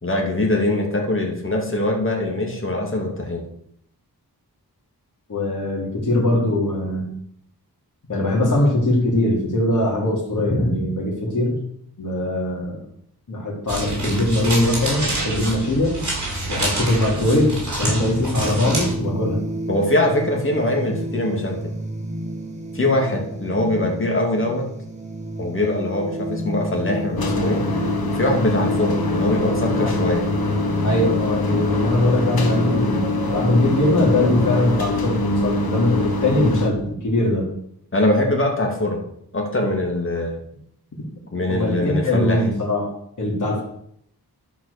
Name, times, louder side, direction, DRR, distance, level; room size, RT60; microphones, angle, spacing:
voice 1, 0.0-3.4 19.7-21.6 22.7-24.7 25.4-27.6 28.1-30.3 37.9-39.0 39.3-40.4 41.3-42.4, left 1 dB, 30° left, 0 dB, 2.6 m, -22 dB
voice 2, 5.3-7.2 8.1-11.6 12.0-12.8 13.3-16.0 16.5-19.4 29.8-29.9 30.8-37.5 41.5-42.9 43.2-43.6, left 1 dB, 50° left, -2 dB, 3.4 m, -21 dB
sound 1, 13.7-18.9, right 2 dB, 45° right, 5.0 m, -27 dB
sound 2, 18.7-34.8, right 1 dB, 20° right, 2.0 m, -31 dB
sound 3, 27.2-36.7, left 2 dB, 70° left, 1.6 m, -24 dB
12.0 x 5.9 x 6.8 m, 0.69 s
wide cardioid pair, 120°, 38 cm